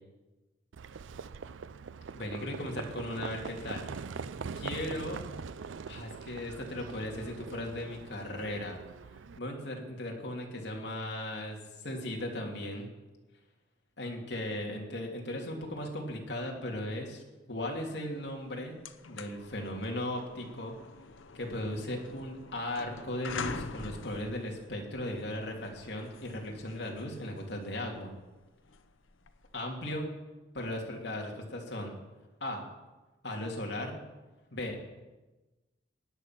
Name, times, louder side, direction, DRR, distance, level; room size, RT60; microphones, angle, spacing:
Livestock farm animals working animals, 0.7-9.4, right 5 dB, 75° right, 0.5 m, -42 dB
voice 1, 2.1-3.9 4.5-5.2 5.9-8.8 9.4-11.6 11.8-12.9 14.0-17.2 17.5-18.8 19.1-20.8 21.3-28.1 29.5-30.1 30.5-32.0 32.4-32.6 33.2-34.0 34.5-34.8, left 1 dB, 60° left, 0 dB, 2.9 m, -37 dB
sound 1, 18.3-18.4 18.7-29.6, left 4 dB, 80° left, 0.9 m, -45 dB
17.0 x 10.5 x 6.0 m, 1.1 s
head